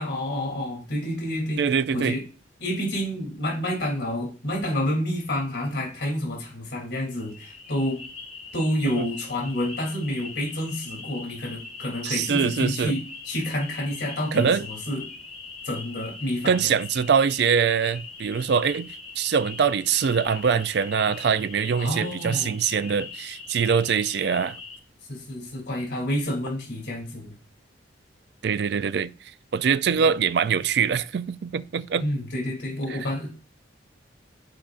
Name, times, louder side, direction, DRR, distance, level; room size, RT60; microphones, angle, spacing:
voice 1, 0.0-1.6 1.9-2.2 2.6-8.0 8.5-15.0 15.6-16.7 21.8-22.5 25.1-27.3 29.9-30.1 32.0-33.3, left 1 dB, 65° left, 3.0 m, -29 dB
voice 2, 1.6-2.2 9.0-9.1 12.0-12.9 14.3-14.6 16.5-24.6 28.4-29.1 29.5-32.1 32.9-33.0, right 6 dB, 60° right, 0.3 m, -23 dB
sound 1, 7.1-24.8, left 4 dB, 35° left, 2.2 m, -41 dB
11.5 x 5.1 x 2.5 m
head